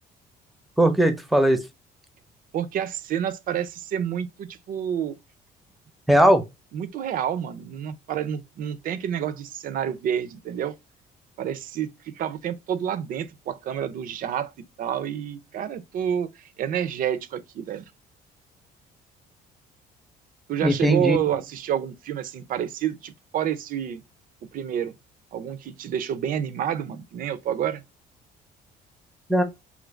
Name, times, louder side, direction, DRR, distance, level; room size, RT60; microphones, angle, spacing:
voice 1, 0.8-1.6 6.1-6.4 20.6-21.2 29.3-29.4, right 1 dB, ahead, 0.6 m, -18 dB
voice 2, 2.5-5.1 6.7-10.7 11.4-14.5 14.8-17.8 20.5-24.0 24.5-24.9 25.3-27.8, right 9 dB, 55° right, 0.5 m, -29 dB
3.1 x 2.5 x 3.1 m
cardioid pair, 110°, 17 cm